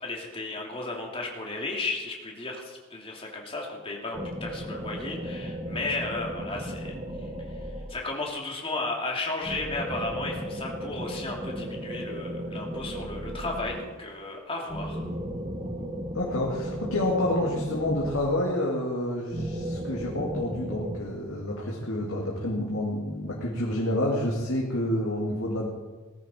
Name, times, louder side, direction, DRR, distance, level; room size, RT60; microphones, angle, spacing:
voice 1, 0.0-7.3 7.9-15.0, left 3 dB, 25° left, -1 dB, 2.9 m, -34 dB
sound 1, 4.1-8.3 9.4-14.1 14.7-18.7 19.3-21.0, equal, 30° right, 1.8 m, -35 dB
voice 2, 16.1-25.7, left 1 dB, 65° left, -3 dB, 2.4 m, -28 dB
18.5 x 14.5 x 4.5 m, 1.3 s
head